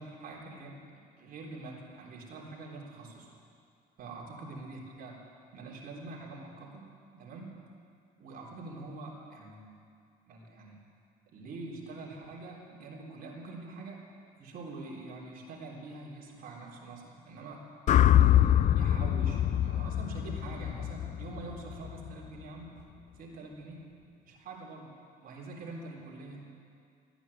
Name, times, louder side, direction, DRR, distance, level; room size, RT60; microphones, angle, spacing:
voice 1, 0.0-3.3 4.0-5.2 5.5-6.8 7.1-7.6 8.2-9.8 10.3-10.8 11.3-14.1 14.4-17.6 18.1-22.7 23.2-23.9 24.2-24.9 25.2-26.5, right 3 dB, 60° right, -2 dB, 3.7 m, -45 dB
sound 1, 17.9-22.1, left 11 dB, 45° left, 0.4 m, -25 dB
15.0 x 9.9 x 9.8 m, 2.3 s
cardioid pair, 110°, 17 cm